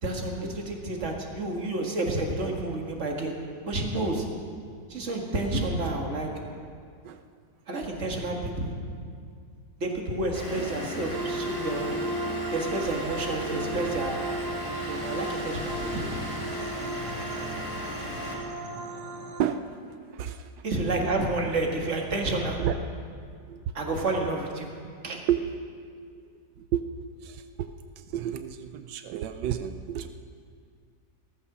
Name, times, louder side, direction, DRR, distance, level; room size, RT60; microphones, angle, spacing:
voice 1, 0.0-3.3 3.7-4.3 4.9-6.3 7.7-8.7 9.8-11.9 12.5-14.2 14.9-16.1 20.6-22.6 23.8-24.7 25.0-25.2, right 2 dB, 45° right, 1 dB, 2.1 m, -30 dB
Vehicle / Engine, 10.3-18.3, left 1 dB, 20° left, 3.9 m, -36 dB
sound 1, 11.1-19.4, right 2 dB, 70° right, 1.7 m, -35 dB
voice 2, 20.1-20.5 21.0-21.3 22.6-22.8 23.5-23.7 25.3-25.4 26.6-26.8 27.2-27.7 28.0-30.1, right 10 dB, 90° right, 9 dB, 1.3 m, -30 dB
16.0 x 14.0 x 6.1 m, 2.2 s
omnidirectional pair, 1.8 m